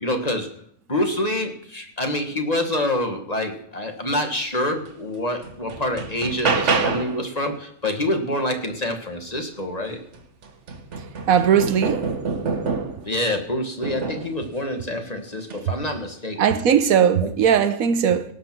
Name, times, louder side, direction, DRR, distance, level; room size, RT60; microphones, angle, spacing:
voice 1, 0.0-0.5 0.9-10.0 13.0-16.4 17.2-17.3, left 1 dB, 30° left, 1.5 m, -26 dB
sound 1, 4.9-5.0 5.4-7.2 9.6-9.7 10.1-13.1 13.8-14.4 15.4-15.7, right 4 dB, 60° right, 1.5 m, -27 dB
voice 2, 11.3-12.0 16.4-18.2, right 8 dB, 85° right, 1.3 m, -18 dB
18.0 x 6.7 x 6.0 m
omnidirectional pair, 1.4 m